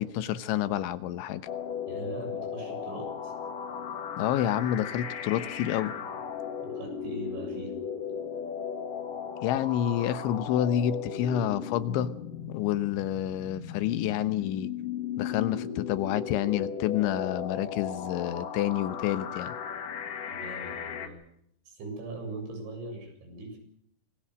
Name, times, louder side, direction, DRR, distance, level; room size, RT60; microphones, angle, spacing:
voice 1, 0.0-1.5 4.1-5.9 9.4-12.2 12.5-14.7 15.2-19.6, left 11 dB, 80° left, 13 dB, 3.4 m, -29 dB
sound 1, 1.5-21.1, left 7 dB, 55° left, 2.9 m, -36 dB
voice 2, 1.9-3.3 6.6-7.7 20.3-21.2 21.7-23.6, right 3 dB, 75° right, 4 dB, 9.8 m, -41 dB
27.0 x 21.0 x 6.4 m, 0.70 s
omnidirectional pair, 5.4 m